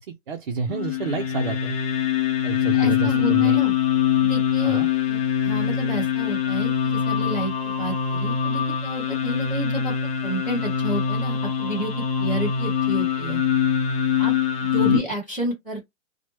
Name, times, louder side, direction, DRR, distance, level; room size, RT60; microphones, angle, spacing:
voice 1, 0.1-1.7 2.4-3.6 4.6-4.9 14.8-15.0, right 5 dB, 45° right, 0.5 m, -29 dB
sound 1, 0.7-15.0, left 8 dB, 50° left, 0.8 m, -23 dB
voice 2, 2.7-3.7 4.2-4.8 5.1-9.9 10.2-13.4 14.2-14.3 14.7-15.8, right 1 dB, 5° left, 0.5 m, -30 dB
3.0 x 2.1 x 3.0 m
hypercardioid pair, 170°, 38 cm